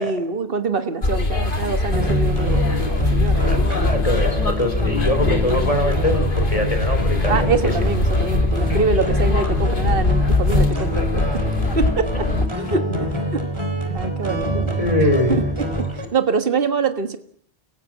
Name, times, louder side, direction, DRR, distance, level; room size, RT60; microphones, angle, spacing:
voice 1, 0.0-4.1 7.3-11.2 11.7-12.3 12.6-12.8 13.3-13.4 13.9-17.2, right 4 dB, 60° right, 9 dB, 1.7 m, -25 dB
sound 1, 1.0-12.5, left 2 dB, 50° left, 2.4 m, -21 dB
sound 2, 1.9-16.0, equal, 25° right, 3.6 m, -26 dB
voice 2, 3.4-7.8 8.2-8.3 8.7-8.8 11.8-12.4 14.5-15.4, left 1 dB, 35° left, 7 dB, 3.5 m, -24 dB
29.5 x 17.0 x 7.3 m, 0.63 s
omnidirectional pair, 1.1 m